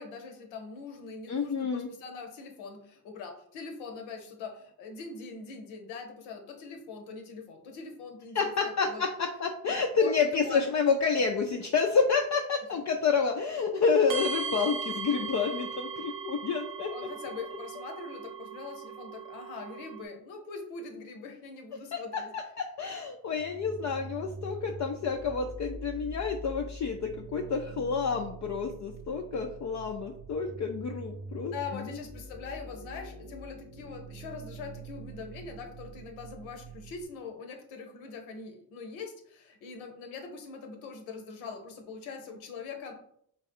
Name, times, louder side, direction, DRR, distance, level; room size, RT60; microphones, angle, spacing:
voice 1, 0.0-9.0 10.0-10.7 12.7-12.8 16.9-22.3 31.5-42.9, left 5 dB, 80° left, 4 dB, 0.9 m, -42 dB
voice 2, 1.3-1.9 8.3-17.1 21.9-31.9, left 5 dB, 40° left, 3 dB, 0.5 m, -29 dB
sound 1, 14.1-20.0, right 6 dB, 70° right, 0.8 m, -38 dB
sound 2, 23.4-37.0, right 2 dB, 10° right, 0.8 m, -44 dB
3.8 x 2.3 x 4.2 m, 0.69 s
hypercardioid pair, 50°, 47 cm